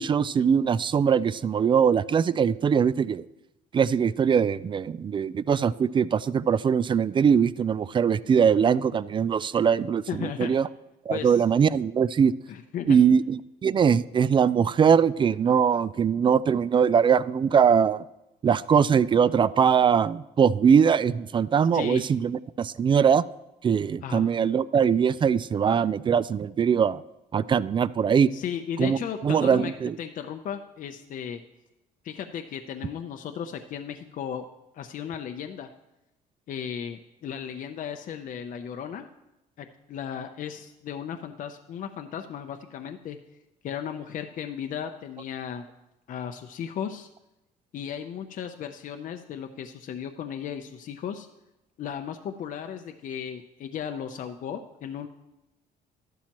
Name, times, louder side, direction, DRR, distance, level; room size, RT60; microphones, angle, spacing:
voice 1, 0.0-3.3 3.7-10.7 11.1-12.3 12.9-18.0 18.4-23.2 23.6-27.0 27.3-28.3 28.8-30.0, right 7 dB, 30° right, 18 dB, 0.3 m, -22 dB
voice 2, 10.1-10.5 11.1-11.4 12.5-13.0 21.7-22.0 24.0-24.3 28.3-29.7 30.0-31.4 32.0-34.5 34.7-35.7 36.5-39.1 39.6-43.2 43.6-45.7 46.1-47.1 47.7-51.3 51.8-55.1, left 8 dB, 50° left, 6 dB, 0.7 m, -35 dB
13.0 x 11.5 x 3.0 m, 0.95 s
cardioid pair, 110°, 17 cm